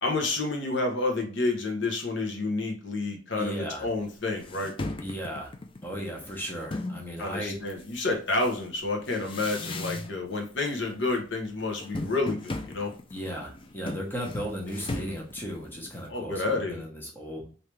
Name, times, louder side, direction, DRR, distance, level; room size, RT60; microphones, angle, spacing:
voice 1, 0.0-4.7 7.2-12.9 16.1-16.8, left 3 dB, 65° left, 2 dB, 0.9 m, -29 dB
voice 2, 3.3-3.9 5.0-5.5 5.8-7.6 13.1-17.5, equal, 10° left, -1 dB, 0.9 m, -35 dB
sound 1, 3.9-4.0 4.4-7.1 7.7-10.4 10.6-11.1 11.4-16.1, left 2 dB, 25° left, 0.4 m, -37 dB
3.3 x 2.8 x 3.1 m, 0.41 s
head